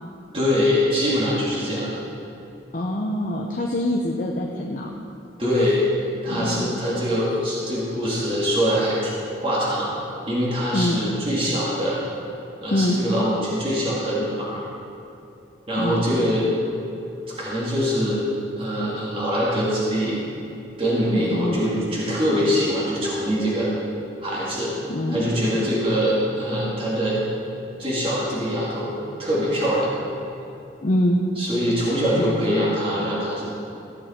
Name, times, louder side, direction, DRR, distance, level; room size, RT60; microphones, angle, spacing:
voice 1, 0.3-2.0 5.4-9.1 9.4-9.9 10.3-12.0 12.6-14.6 15.7-16.6 17.4-18.3 18.5-20.2 20.8-23.7 24.2-24.7 25.1-27.2 27.8-28.9 29.2-29.9 31.4-33.5, equal, 30° right, -7 dB, 2.1 m, -23 dB
voice 2, 2.7-4.9 6.3-6.8 10.7-11.0 12.7-13.0 15.8-16.0 21.1-21.6 24.9-25.7 30.8-31.2 32.2-32.6, left 1 dB, 45° left, -1 dB, 0.7 m, -25 dB
15.0 x 8.3 x 4.3 m, 2.8 s
head